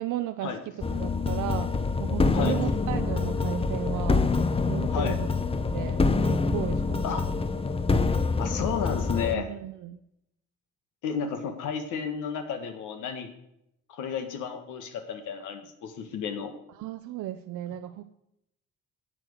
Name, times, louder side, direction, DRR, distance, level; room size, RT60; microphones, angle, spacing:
voice 1, 0.0-7.0 9.3-10.0 16.7-18.2, right 12 dB, 80° right, 9 dB, 0.6 m, -35 dB
sound 1, 0.8-9.3, left 3 dB, 20° left, 0.7 m, -26 dB
sound 2, 2.6-7.6 8.1-8.2, left 6 dB, 55° left, 1.1 m, -43 dB
voice 2, 8.4-9.5 11.0-13.3 13.9-16.5, left 7 dB, 85° left, 6 dB, 1.6 m, -32 dB
9.2 x 7.6 x 6.5 m, 0.80 s
cardioid pair, 90°, 30 cm